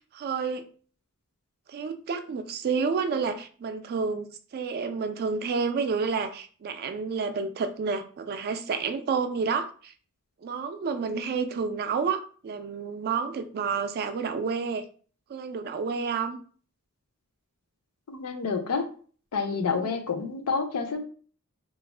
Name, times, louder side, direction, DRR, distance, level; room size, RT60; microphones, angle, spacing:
voice 1, 0.1-0.7 1.7-9.9 10.4-14.8 15.3-16.4 19.8-20.0, right 5 dB, 45° right, 0.3 m, -30 dB
voice 2, 18.1-18.8 19.3-21.0, left 5 dB, 75° left, 0.5 m, -28 dB
2.4 x 2.1 x 3.2 m
head